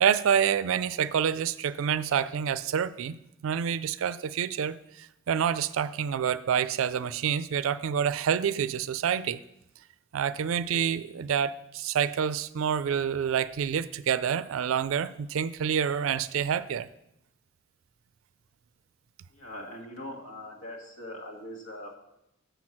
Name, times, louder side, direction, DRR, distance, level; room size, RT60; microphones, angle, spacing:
voice 1, 0.0-3.1 3.4-9.4 10.1-16.9, right 8 dB, 75° right, 16 dB, 0.4 m, -27 dB
voice 2, 19.3-22.0, left 1 dB, 85° left, 0 dB, 1.7 m, -41 dB
6.8 x 6.1 x 5.9 m, 0.84 s
head